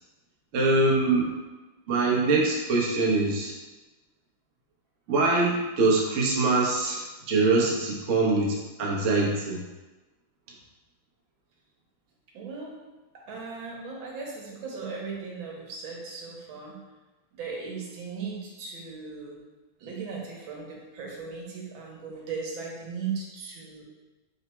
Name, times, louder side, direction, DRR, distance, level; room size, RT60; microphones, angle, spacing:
voice 1, 0.5-1.3 1.9-3.5 5.1-9.6, right 3 dB, 65° right, -3 dB, 0.7 m, -23 dB
voice 2, 12.3-12.8 13.1-16.8 17.3-19.4 19.8-23.8, right 5 dB, 85° right, -2 dB, 1.6 m, -37 dB
3.9 x 2.1 x 4.2 m, 1.1 s
omnidirectional pair, 2.2 m